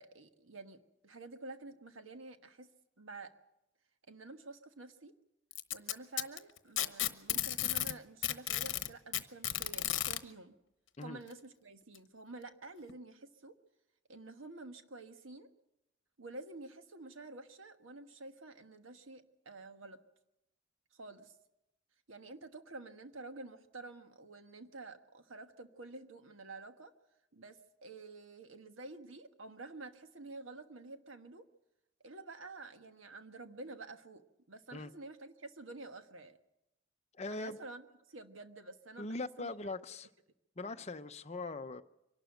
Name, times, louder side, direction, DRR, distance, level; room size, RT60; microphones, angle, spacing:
voice 1, 0.0-2.7 3.0-3.3 4.1-5.1 5.7-10.6 11.0-13.6 14.1-15.5 16.2-20.0 20.9-21.4 22.1-26.9 27.3-31.4 32.0-36.4 37.3-39.6, right 2 dB, 80° right, 1.4 m, -50 dB
Packing tape duct tape, 5.5-7.9 8.2-10.2 11.3-11.4 11.9-12.0 12.9-13.0, left 13 dB, 65° left, 1.0 m, -33 dB
voice 2, 37.1-37.6 39.0-40.1 40.6-41.8, left 2 dB, 35° left, 0.7 m, -41 dB
24.0 x 12.0 x 9.0 m
head